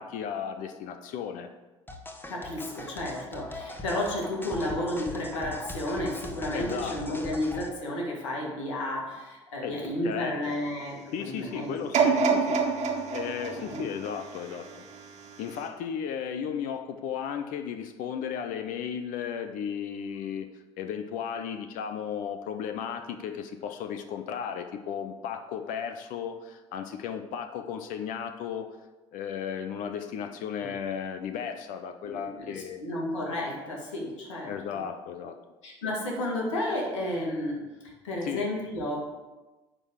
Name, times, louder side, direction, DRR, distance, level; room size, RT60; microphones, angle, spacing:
voice 1, 0.0-1.5 6.5-7.2 9.6-9.8 10.0-10.6 11.1-12.7 13.1-14.8 15.4-20.5 20.8-28.7 29.1-32.8 34.5-35.4 38.2-38.4, left 8 dB, 60° left, 7 dB, 0.8 m, -35 dB
sound 1, 1.9-7.7, left 2 dB, 15° left, 1.2 m, -40 dB
voice 2, 2.3-12.2 13.5-13.8 30.6-30.7 32.0-34.8 35.6-39.0, left 1 dB, 85° left, -1 dB, 2.0 m, -32 dB
sound 2, 11.9-15.0 15.6-15.7, right 5 dB, 50° right, 1.7 m, -27 dB
9.8 x 3.9 x 6.4 m, 1.2 s
hypercardioid pair, 65°, 15 cm